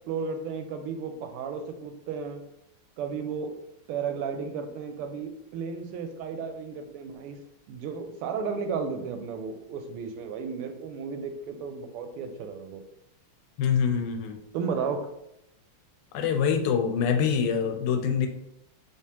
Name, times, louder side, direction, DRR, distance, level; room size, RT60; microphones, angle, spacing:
voice 1, 0.1-2.4 3.0-3.5 3.9-7.4 7.7-12.8 14.5-15.1, right 5 dB, 85° right, 6 dB, 1.5 m, -33 dB
voice 2, 13.6-14.4 16.1-18.3, left 7 dB, 85° left, 6 dB, 1.5 m, -25 dB
3.4 x 3.3 x 2.8 m, 0.81 s
omnidirectional pair, 2.4 m